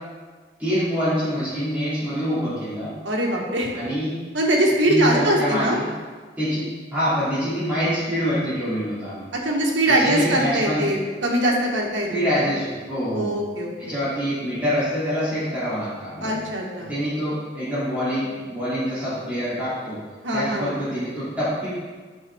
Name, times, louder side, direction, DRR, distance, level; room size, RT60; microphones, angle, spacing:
voice 1, 0.6-3.0 3.7-4.2 4.9-5.9 6.4-9.3 9.9-10.9 12.1-13.4 13.8-16.4 16.9-20.0 20.3-21.7, equal, 10° right, -13 dB, 2.5 m, -25 dB
voice 2, 3.0-3.7 4.3-5.8 9.3-12.4 13.1-13.9 16.2-16.9 20.2-20.7, right 1 dB, 80° right, -1 dB, 1.6 m, -22 dB
9.2 x 5.6 x 3.5 m, 1.4 s
head